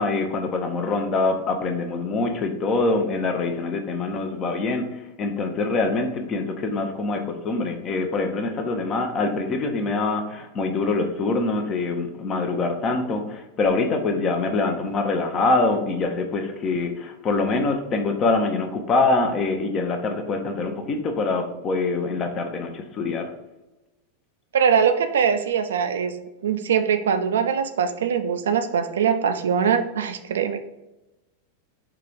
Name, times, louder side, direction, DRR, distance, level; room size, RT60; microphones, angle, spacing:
voice 1, 0.0-4.9 5.2-23.3, left 3 dB, 30° left, 5 dB, 0.7 m, -24 dB
voice 2, 24.5-26.1 26.4-30.6, right 7 dB, 65° right, 8 dB, 0.4 m, -22 dB
4.8 x 2.5 x 4.5 m, 0.99 s
figure-of-eight pair, 90°, 0 cm